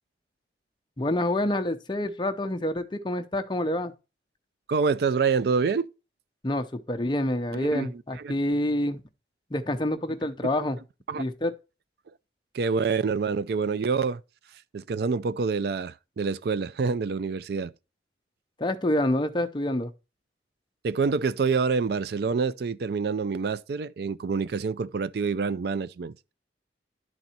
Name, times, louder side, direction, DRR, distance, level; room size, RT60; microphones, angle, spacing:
voice 1, 1.0-3.9 6.4-9.0 9.5-10.8 11.2-11.6 18.6-19.9, left 1 dB, 25° left, 0.6 m, -27 dB
voice 2, 4.7-5.9 7.5-8.3 11.1-11.2 12.5-14.2 14.7-17.7 20.8-26.1, right 5 dB, 60° right, 0.4 m, -27 dB
11.0 x 4.0 x 4.3 m
head